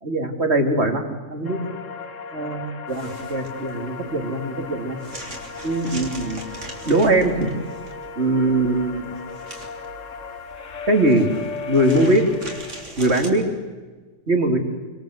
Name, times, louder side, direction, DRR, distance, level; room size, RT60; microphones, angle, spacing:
voice 1, 0.0-1.0 1.3-1.7 2.3-5.0 5.6-6.4 6.8-7.5 8.2-9.1 10.9-11.2 11.7-12.2 13.0-13.4 14.3-14.6, right 1 dB, 60° right, 5 dB, 3.2 m, -21 dB
sound 1, 1.4-12.8, left 5 dB, 90° left, 1.8 m, -36 dB
sound 2, 2.9-13.3, right 1 dB, 75° right, 3.9 m, -41 dB
27.0 x 25.5 x 8.1 m, 1.3 s
omnidirectional pair, 1.3 m